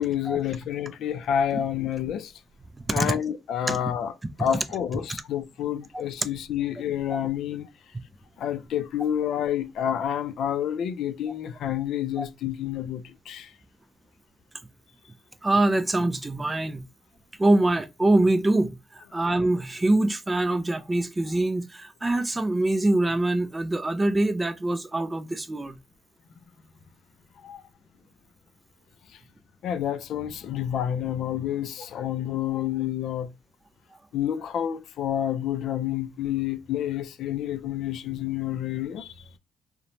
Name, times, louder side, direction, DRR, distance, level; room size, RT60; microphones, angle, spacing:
voice 1, 0.0-2.3 2.9-4.1 4.4-7.7 8.4-13.5 27.4-27.6 29.1-29.2 29.6-33.3 34.1-39.2, left 10 dB, 75° left, 0.4 m, -29 dB
voice 2, 2.8-3.1 3.7-3.8 4.4-4.5 12.2-12.3 15.4-16.9 17.4-25.8, right 2 dB, 15° right, 0.3 m, -24 dB
2.9 x 2.1 x 2.6 m
cardioid pair, 105°, 0 cm